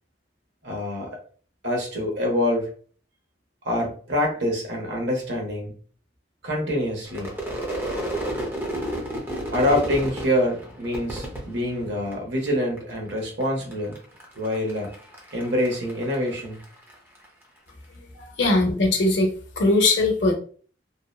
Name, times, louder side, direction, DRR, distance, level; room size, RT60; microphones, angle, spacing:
voice 1, 0.6-1.2 1.6-2.7 3.6-5.8 6.4-7.3 9.5-14.0 14.3-15.0 15.3-16.6, left 1 dB, 70° right, 0 dB, 0.8 m, -25 dB
Crowd / Fireworks, 7.1-12.5 12.8-13.4 13.7-17.3, right 1 dB, 15° right, 0.6 m, -32 dB
voice 2, 17.9-20.3, left 2 dB, 80° left, 3 dB, 0.7 m, -21 dB
2.7 x 2.1 x 2.3 m, 0.44 s
head